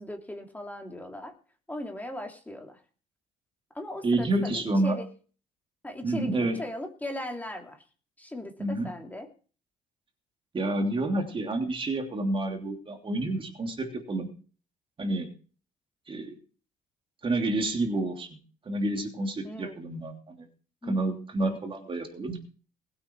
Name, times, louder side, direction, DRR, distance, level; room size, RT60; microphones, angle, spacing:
voice 1, 0.0-1.3 1.7-2.8 3.7-5.1 5.8-7.8 8.2-9.3 19.4-19.7 20.8-21.6, left 1 dB, 10° left, 3 dB, 2.9 m, -38 dB
voice 2, 4.0-5.0 6.0-6.6 8.6-8.9 10.5-14.3 15.0-15.3 16.1-16.4 17.2-18.4 18.6-20.5 20.8-22.4, right 2 dB, 30° right, 3 dB, 3.1 m, -29 dB
20.5 x 8.9 x 4.7 m, 0.39 s
cardioid pair, 110°, 17 cm